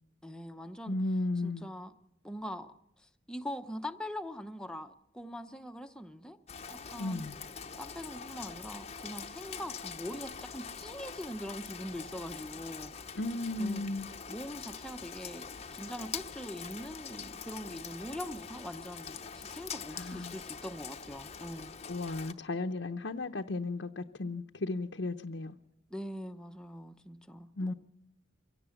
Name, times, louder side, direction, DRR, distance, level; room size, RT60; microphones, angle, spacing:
voice 1, 0.2-1.0 1.4-1.9 2.2-2.7 3.3-6.4 6.9-7.2 7.8-12.9 13.6-13.9 14.3-21.7 25.9-27.7, equal, 5° left, 0.8 m, -42 dB
voice 2, 0.9-1.7 6.9-7.4 13.1-14.1 19.9-20.4 21.8-25.6 27.6-27.7, left 2 dB, 65° left, 0.8 m, -35 dB
Rain, 6.5-22.3, left 6 dB, 35° left, 0.8 m, -44 dB
24.0 x 17.0 x 7.2 m
head